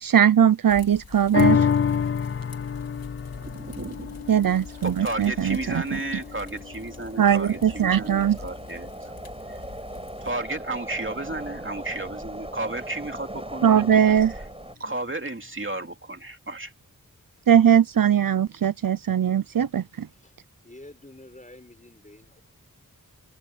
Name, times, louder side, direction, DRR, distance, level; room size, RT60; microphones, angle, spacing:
voice 1, 0.0-1.7 4.3-6.0 7.2-8.4 13.6-14.3 17.5-20.1, right 9 dB, 70° right, 0.6 m, -20 dB
sound 1, 0.7-10.3, left 4 dB, 80° left, 3.5 m, -44 dB
sound 2, 1.3-8.0 8.5-8.6, left 7 dB, 40° left, 0.4 m, -28 dB
sound 3, 3.2-14.7, right 1 dB, 15° right, 7.5 m, -40 dB
voice 2, 3.4-4.3 4.8-9.1 10.2-13.9 14.8-16.7, right 2 dB, 35° right, 2.7 m, -33 dB
voice 3, 20.6-22.4, left 1 dB, 20° left, 5.4 m, -48 dB
wide cardioid pair, 65°, 35 cm